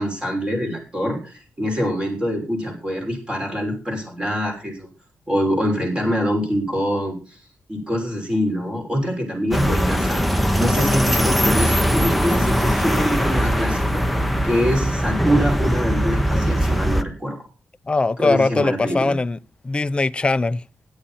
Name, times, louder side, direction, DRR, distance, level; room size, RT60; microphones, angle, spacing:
voice 1, 0.0-4.9 5.3-7.4 7.7-10.3 10.6-14.0 14.4-17.4 18.2-19.1, equal, 20° right, 6.2 m, -24 dB
sound 1, 9.5-17.0, equal, ahead, 0.9 m, -20 dB
voice 2, 17.9-19.4 19.6-20.6, left 3 dB, 20° left, 0.6 m, -20 dB
16.5 x 11.5 x 4.2 m
wide cardioid pair, 150°, 5 cm